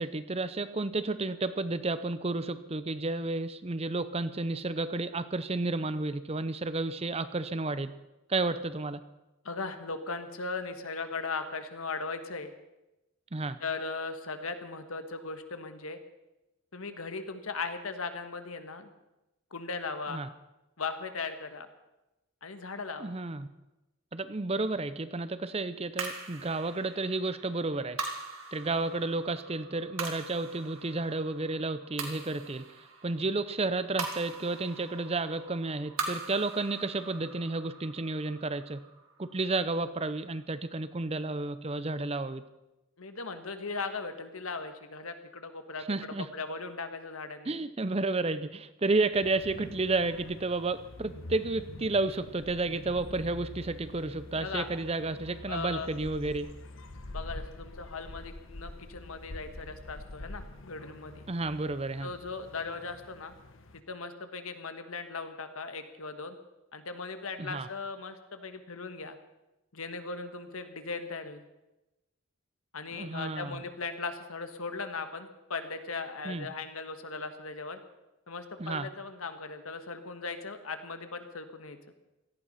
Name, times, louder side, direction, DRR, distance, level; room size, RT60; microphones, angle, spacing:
voice 1, 0.0-7.9 8.3-9.0 13.3-13.6 20.1-20.3 23.0-23.5 24.1-28.0 28.5-32.6 33.0-38.8 39.2-42.4 45.9-46.3 47.5-56.5 61.3-62.1 67.4-67.7 72.9-73.6 76.2-76.5 78.6-78.9, right 3 dB, 30° right, 14 dB, 0.6 m, -31 dB
voice 2, 9.4-12.5 13.6-16.0 16.7-18.9 19.5-20.2 20.8-21.7 22.4-23.1 43.0-47.5 54.4-54.7 55.5-55.9 57.1-61.2 62.0-63.3 63.7-66.4 66.7-69.1 69.7-71.4 72.7-77.8 78.3-81.8, left 4 dB, 85° left, 8 dB, 1.6 m, -38 dB
sound 1, 26.0-40.5, right 4 dB, 70° right, 2.7 m, -42 dB
sound 2, 49.1-63.8, left 2 dB, 65° left, 1.3 m, -46 dB
17.5 x 14.0 x 5.7 m, 0.98 s
head